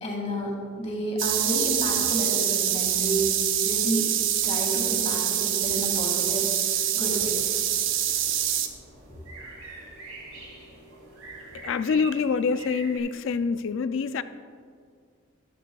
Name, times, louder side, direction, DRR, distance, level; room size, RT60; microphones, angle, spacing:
voice 1, 0.0-3.3 3.6-4.0 4.4-7.3 9.1-9.2, right 1 dB, 30° left, 2.1 m, -30 dB
sound 1, 1.2-8.7, right 10 dB, 65° right, 0.7 m, -25 dB
sound 2, 7.3-13.0, right 2 dB, 85° right, 2.9 m, -44 dB
voice 2, 11.5-14.2, left 5 dB, 60° left, 0.3 m, -26 dB
14.0 x 12.5 x 2.3 m
head